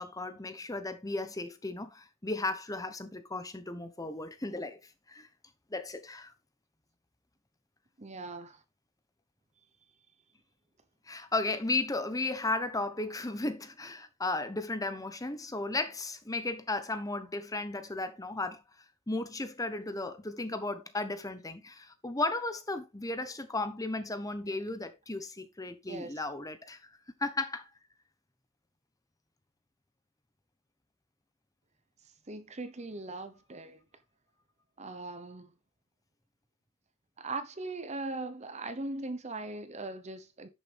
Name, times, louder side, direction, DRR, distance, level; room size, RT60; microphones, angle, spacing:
voice 1, 0.0-5.3 5.7-6.3 11.1-18.6 19.1-27.6, left 2 dB, 15° left, 0.9 m, -35 dB
voice 2, 8.0-8.6 25.9-26.1 32.3-33.8 34.8-35.5 37.2-40.5, right 2 dB, 30° right, 0.9 m, -39 dB
10.5 x 6.7 x 3.4 m
head